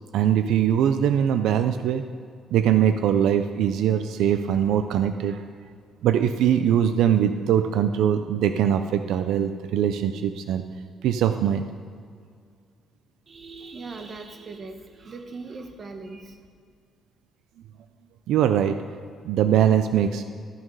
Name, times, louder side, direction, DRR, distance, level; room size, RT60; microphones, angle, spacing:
voice 1, 0.1-2.0 2.5-5.4 6.0-10.6 11.0-11.6 18.3-18.8 19.3-20.2, right 9 dB, 80° right, 9 dB, 0.4 m, -22 dB
voice 2, 13.3-16.4, right 3 dB, 35° right, 5 dB, 1.0 m, -39 dB
13.0 x 6.0 x 5.4 m, 2.2 s
cardioid pair, 135°, 0 cm